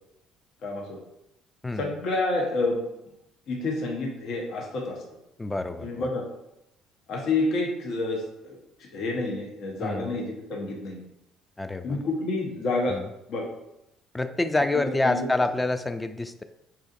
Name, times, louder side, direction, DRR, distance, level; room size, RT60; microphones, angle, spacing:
voice 1, 0.6-1.0 1.8-2.9 3.5-5.0 5.8-6.2 7.1-11.0 11.8-13.0 13.3-13.4 14.7-15.3, left 2 dB, 60° left, -1 dB, 0.8 m, -29 dB
voice 2, 5.4-6.1 9.8-10.2 11.6-12.0 12.9-13.1 14.1-16.4, left 2 dB, 15° left, 9 dB, 0.4 m, -27 dB
5.7 x 2.5 x 2.5 m, 0.83 s
hypercardioid pair, 60°, 0 cm